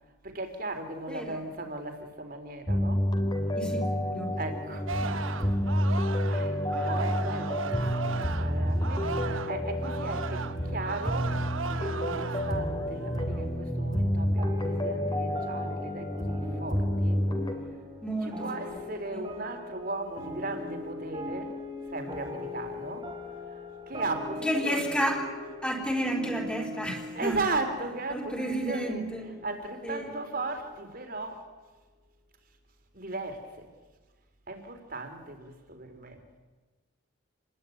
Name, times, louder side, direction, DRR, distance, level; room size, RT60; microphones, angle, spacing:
voice 1, 0.2-3.0 4.4-5.7 6.3-17.2 18.2-21.6 21.9-23.1 23.5-25.1 27.2-31.5 32.9-33.7 34.5-36.2, right 2 dB, 45° right, 6 dB, 4.0 m, -37 dB
voice 2, 1.1-1.4 3.5-4.3 18.0-18.7 19.1-19.2 24.4-25.2 25.6-27.5 28.1-29.3 29.8-30.1, right 1 dB, 5° left, 2 dB, 4.1 m, -31 dB
sound 1, 2.7-17.5, equal, 20° left, 3.1 m, -29 dB
Singing, 4.9-9.6 9.8-12.6 13.0-13.4, right 5 dB, 90° right, 1.1 m, -37 dB
sound 2, 14.4-31.2, left 2 dB, 25° right, 3.6 m, -41 dB
29.0 x 21.0 x 9.5 m, 1.3 s
head